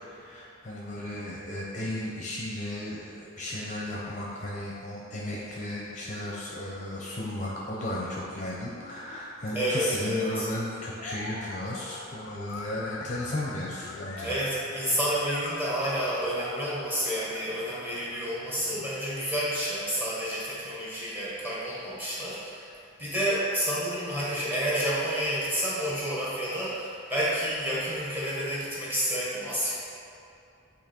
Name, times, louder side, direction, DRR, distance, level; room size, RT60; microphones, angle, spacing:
voice 1, 0.1-14.3, left 1 dB, 35° left, -5 dB, 0.7 m, -35 dB
sound 1, 6.2-18.9, left 3 dB, 70° left, 0.4 m, -44 dB
voice 2, 9.5-10.5 14.2-22.7 23.0-29.7, equal, 10° right, -8 dB, 1.4 m, -29 dB
8.5 x 2.9 x 4.4 m, 2.6 s
head